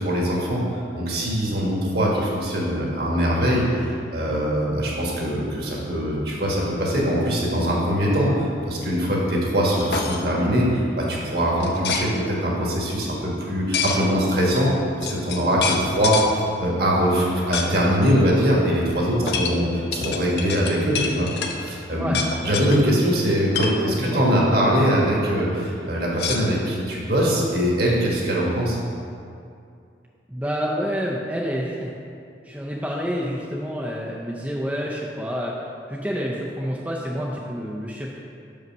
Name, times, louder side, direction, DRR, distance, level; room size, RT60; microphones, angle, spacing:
voice 1, 0.0-14.7 15.0-19.7 19.9-22.2 22.4-28.8, equal, 60° right, -3 dB, 1.5 m, -22 dB
sound 1, 9.8-10.2 11.6-12.1 13.7-14.0 14.7-14.8 15.0-16.3 17.5-17.7 18.0-18.1 19.3-21.6 22.1-22.8 23.3-23.8 26.1-27.0, left 5 dB, 65° left, 0.6 m, -27 dB
voice 2, 23.9-24.2 30.3-31.9 32.4-38.2, equal, 10° right, -4 dB, 0.5 m, -28 dB
6.4 x 5.4 x 5.3 m, 2.5 s
head